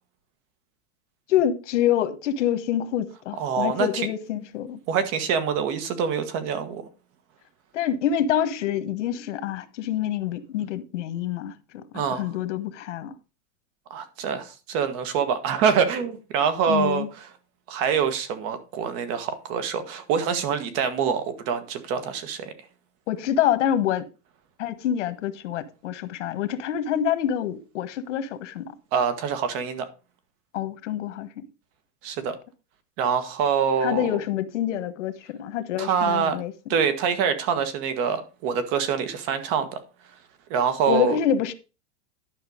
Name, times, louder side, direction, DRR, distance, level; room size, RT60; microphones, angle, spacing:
voice 1, 1.3-4.8 7.7-13.2 16.7-17.1 23.1-24.1 24.6-28.7 30.5-31.5 33.8-36.5 40.9-41.5, left 10 dB, 90° left, 1.3 m, -26 dB
voice 2, 3.4-4.1 4.9-6.8 11.9-12.3 13.9-17.0 17.7-22.5 28.9-29.9 32.0-32.3 33.0-34.1 35.8-36.4 36.7-39.8 40.5-41.2, right 7 dB, 35° right, 1.5 m, -25 dB
11.5 x 5.7 x 5.0 m
supercardioid pair, 170°, 35 cm